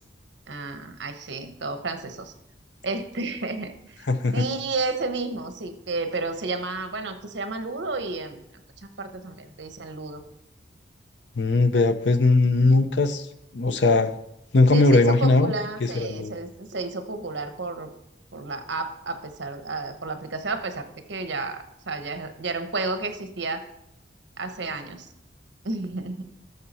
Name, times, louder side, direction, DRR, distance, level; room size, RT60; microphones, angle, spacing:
voice 1, 0.5-2.3 2.8-4.1 4.3-8.4 9.0-10.2 14.7-17.9 18.3-23.6 24.4-25.1 25.6-26.2, right 3 dB, 75° right, 8 dB, 1.0 m, -31 dB
voice 2, 4.1-4.4 11.4-13.3 13.5-14.1 14.5-15.5 15.8-16.4, left 3 dB, 75° left, 10 dB, 0.7 m, -19 dB
12.5 x 6.8 x 4.2 m, 0.81 s
head